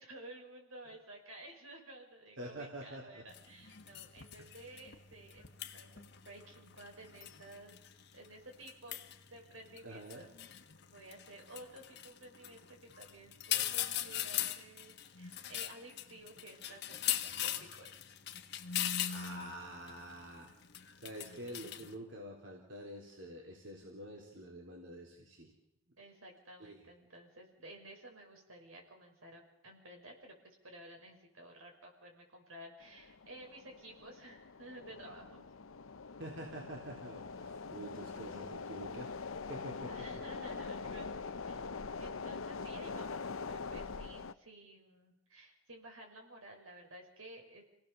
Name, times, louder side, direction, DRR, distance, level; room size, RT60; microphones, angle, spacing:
voice 1, 0.0-7.8 8.1-9.0 9.3-10.3 10.9-17.9 26.0-35.5 39.9-41.6 42.0-47.6, right 1 dB, 80° right, 2 dB, 6.1 m, -53 dB
voice 2, 2.4-3.2 4.4-4.5 9.8-10.3 18.9-20.5 21.0-25.5 26.6-26.8 36.2-39.1 39.5-39.9, right 1 dB, 60° right, -1 dB, 3.9 m, -47 dB
sound 1, 3.3-21.9, left 11 dB, 55° left, 1.5 m, -41 dB
sound 2, 32.8-44.3, left 4 dB, 80° left, 0.8 m, -44 dB
28.5 x 18.0 x 7.1 m, 0.84 s
head